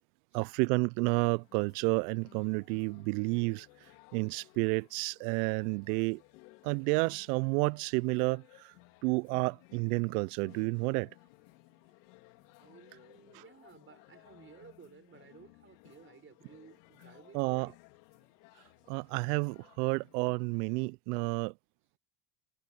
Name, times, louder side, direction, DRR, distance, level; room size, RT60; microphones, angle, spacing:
voice 1, 0.3-3.7 4.1-6.2 6.6-8.7 9.0-11.1 17.3-17.7 18.9-21.5, right 29 dB, 75° right, 0.6 m, -30 dB
sound 1, 1.4-20.9, left 26 dB, 75° left, 3.6 m, -59 dB
voice 2, 12.6-17.7, right 6 dB, 25° right, 4.6 m, -56 dB
supercardioid pair, 95°, 47 cm